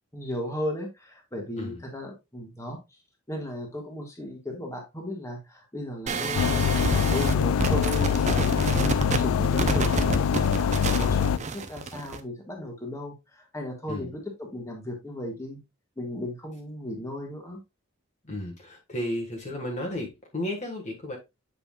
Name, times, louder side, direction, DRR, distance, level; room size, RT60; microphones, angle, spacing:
voice 1, 0.1-2.8 3.3-8.6 9.1-15.6 16.0-17.6, left 1 dB, 15° left, 1 dB, 1.6 m, -36 dB
sound 1, 6.1-12.2, right 3 dB, 35° right, 0.6 m, -29 dB
sound 2, 6.3-11.4, left 7 dB, 70° left, 0.3 m, -24 dB
voice 2, 18.2-21.2, left 1 dB, 35° left, 0 dB, 1.4 m, -33 dB
7.5 x 5.5 x 2.3 m, 0.22 s
head